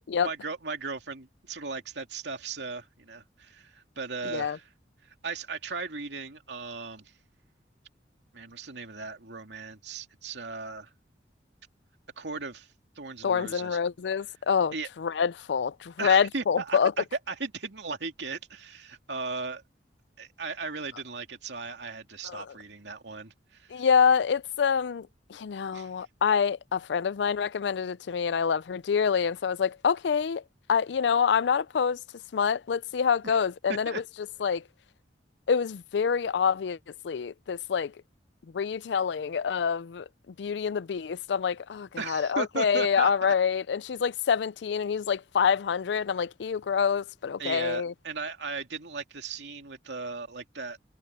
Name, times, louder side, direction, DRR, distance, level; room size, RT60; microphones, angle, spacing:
voice 1, 0.2-4.7 5.0-7.0 8.3-10.9 12.2-12.7 12.9-13.8 14.7-14.9 16.0-19.6 20.2-23.8 25.7-25.9 33.2-33.4 33.7-34.0 42.0-43.1 47.4-50.8, right 4 dB, 80° right, 2.6 m, -37 dB
voice 2, 4.2-4.6 13.2-16.9 22.2-22.5 23.7-30.4 30.7-32.0 32.3-34.0 34.4-34.6 35.5-36.8 37.0-37.9 38.5-40.1 40.4-47.9, left 6 dB, 75° left, 0.4 m, -26 dB
head